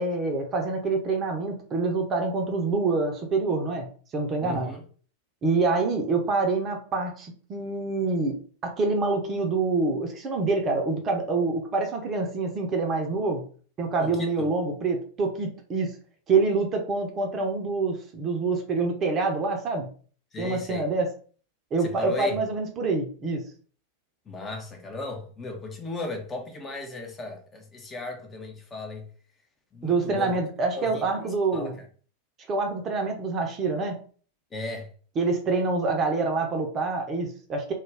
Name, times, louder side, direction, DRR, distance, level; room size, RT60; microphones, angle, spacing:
voice 1, 0.0-3.9 4.1-4.7 5.4-8.4 8.6-13.4 13.8-16.0 16.3-19.9 20.4-21.1 21.7-23.4 29.8-31.7 32.5-34.0 35.2-37.7, right 3 dB, 30° right, 0.6 m, -26 dB
voice 2, 4.4-4.8 14.0-14.5 20.3-20.9 21.8-22.4 24.3-29.1 29.7-30.4 30.8-31.9 34.5-34.9, left 2 dB, 20° left, 0.6 m, -36 dB
2.4 x 2.2 x 3.3 m
figure-of-eight pair, 90°, 0 cm